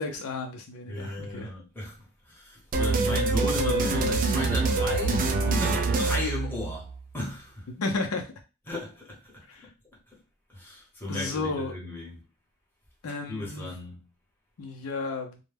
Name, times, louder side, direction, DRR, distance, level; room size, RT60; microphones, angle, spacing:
voice 1, 0.0-1.5 7.8-8.3 9.5-9.7 11.1-11.7 13.0-13.7 14.6-15.4, left 3 dB, 80° left, 0.5 m, -32 dB
voice 2, 0.9-2.0 2.3-7.7 8.7-9.3 10.5-12.2 13.3-14.0, left 2 dB, 10° left, 0.9 m, -35 dB
sound 1, 2.7-7.0, right 3 dB, 40° right, 0.3 m, -25 dB
2.2 x 2.0 x 3.3 m
head